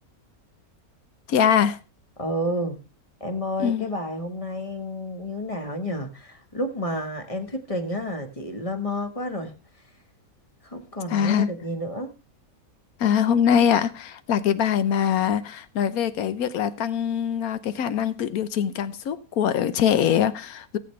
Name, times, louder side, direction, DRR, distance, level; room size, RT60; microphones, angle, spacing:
voice 1, 1.3-1.8 3.6-3.9 11.1-11.5 13.0-20.8, left 8 dB, 80° left, 1.3 m, -23 dB
voice 2, 2.2-2.8 3.2-9.5 10.6-12.1, left 1 dB, 25° left, 1.4 m, -30 dB
18.0 x 7.7 x 3.3 m
omnidirectional pair, 1.5 m